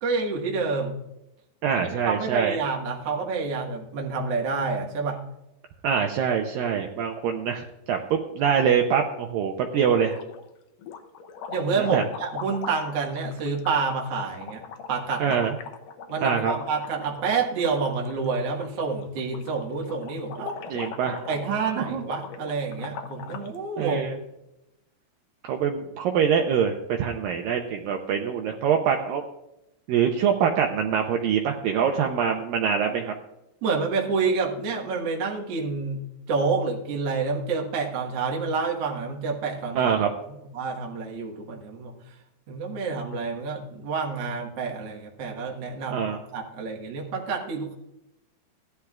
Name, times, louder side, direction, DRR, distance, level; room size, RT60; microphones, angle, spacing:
voice 1, 0.0-0.9 1.7-5.2 11.5-15.4 16.1-20.6 21.3-24.1 33.6-36.0 36.3-39.9 40.5-41.9 42.5-46.0 46.3-47.7, right 4 dB, 65° right, -1 dB, 1.6 m, -28 dB
voice 2, 1.6-2.6 5.8-10.2 11.8-12.0 15.2-15.5 16.2-16.5 20.7-22.0 23.8-24.2 25.4-29.2 29.9-33.1 39.8-40.1 45.9-46.2, right 7 dB, 90° right, 3 dB, 2.0 m, -24 dB
sound 1, 9.9-10.5 10.8-23.6, left 6 dB, 80° left, 1.9 m, -41 dB
16.5 x 11.5 x 2.4 m, 0.88 s
omnidirectional pair, 5.0 m